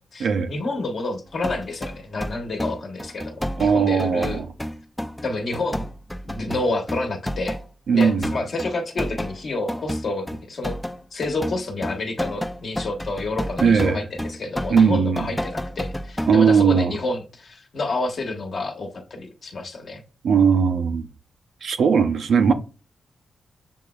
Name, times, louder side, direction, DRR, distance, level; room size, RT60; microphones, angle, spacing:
voice 1, 0.1-4.4 5.2-5.9 6.2-7.6 7.9-10.8 11.1-20.0, left 2 dB, 65° left, 1.1 m, -29 dB
sound 1, 1.4-7.7 8.0-16.6, equal, 10° left, 0.3 m, -30 dB
voice 2, 3.6-4.5 7.9-8.3 13.6-14.0 14.7-15.3 16.3-16.9 20.2-21.1 21.6-22.5, right 6 dB, 85° right, 0.6 m, -18 dB
6.9 x 3.0 x 2.3 m
cardioid pair, 65°, 0 cm